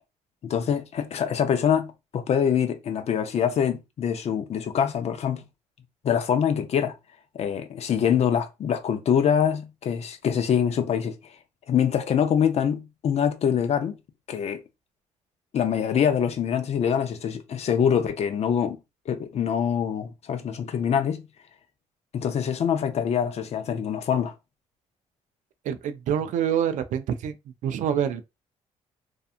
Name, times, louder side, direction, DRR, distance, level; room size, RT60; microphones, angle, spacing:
voice 1, 0.4-5.4 6.0-6.9 7.3-11.2 11.7-14.0 14.3-14.6 15.5-18.8 19.1-21.2 22.1-24.3, left 8 dB, 55° left, 0.5 m, -24 dB
voice 2, 25.7-27.3 27.6-28.2, right 9 dB, 70° right, 0.4 m, -26 dB
2.7 x 2.3 x 2.4 m
supercardioid pair, 70°, 14 cm